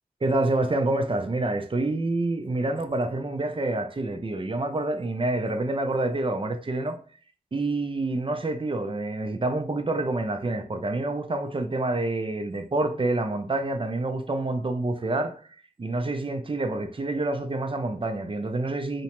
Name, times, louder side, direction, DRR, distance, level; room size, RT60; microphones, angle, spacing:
voice 1, 0.2-7.0 7.5-15.3 15.8-19.0, right 2 dB, 35° right, 0.4 m, -27 dB
2.9 x 2.1 x 2.9 m
cardioid pair, 40°, 16 cm